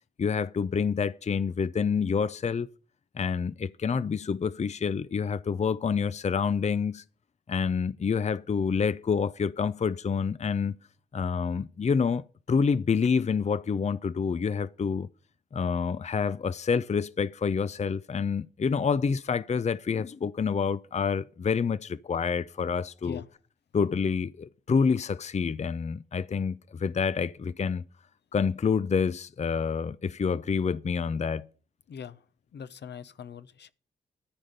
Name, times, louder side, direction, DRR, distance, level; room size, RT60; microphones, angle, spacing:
voice 1, 0.2-2.7 3.1-7.0 7.5-10.7 11.1-15.1 15.5-23.2 23.7-27.8 28.3-31.5, left 6 dB, 35° left, 0.5 m, -28 dB
voice 2, 31.9-32.2 32.5-33.7, left 7 dB, 65° left, 0.8 m, -42 dB
13.0 x 5.0 x 8.6 m
supercardioid pair, 40°, 19 cm